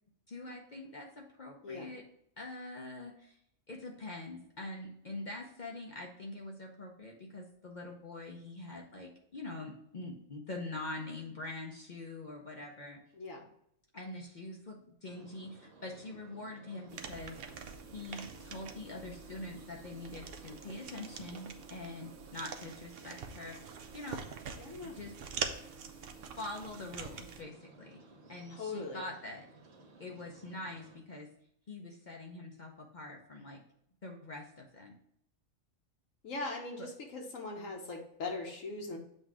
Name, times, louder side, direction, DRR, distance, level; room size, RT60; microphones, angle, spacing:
voice 1, 0.3-2.1 2.4-3.4 3.7-13.0 13.9-17.4 17.9-24.3 24.8-25.1 26.4-28.0 28.3-29.5 30.0-31.3 31.7-33.6 34.0-35.0 36.8-36.9, left 2 dB, 45° left, 0 dB, 0.7 m, -44 dB
voice 2, 13.1-13.4 24.6-25.0 28.5-29.0 36.2-39.0, left 3 dB, 80° left, 1 dB, 1.3 m, -40 dB
sound 1, 15.0-31.0, right 2 dB, 75° right, 1.4 m, -58 dB
sound 2, 16.9-27.4, right 6 dB, 60° right, 0.7 m, -45 dB
7.6 x 2.6 x 4.7 m, 0.72 s
omnidirectional pair, 1.4 m